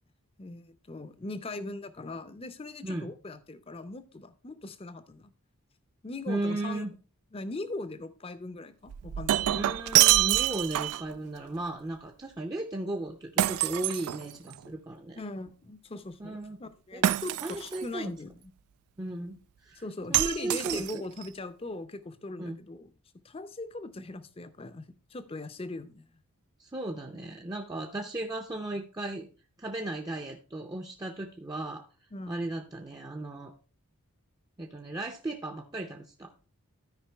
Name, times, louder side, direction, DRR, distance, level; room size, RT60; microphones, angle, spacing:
voice 1, 0.4-5.3 6.0-6.9 7.3-9.6 15.1-18.5 19.8-22.9 23.2-26.1 32.1-32.4, left 2 dB, 25° left, 13 dB, 0.6 m, -40 dB
voice 2, 6.3-6.9 9.6-15.2 16.2-16.6 16.9-18.1 19.0-19.8 20.1-21.1 22.4-22.6 26.6-29.3 29.6-31.8 32.3-33.5 34.6-36.3, right 2 dB, 15° right, 1 dB, 0.6 m, -36 dB
Shatter, 8.9-11.1 13.4-14.7 17.0-17.8 20.1-21.2, right 14 dB, 85° right, 0.3 m, -26 dB
13.0 x 5.2 x 3.4 m, 0.37 s
head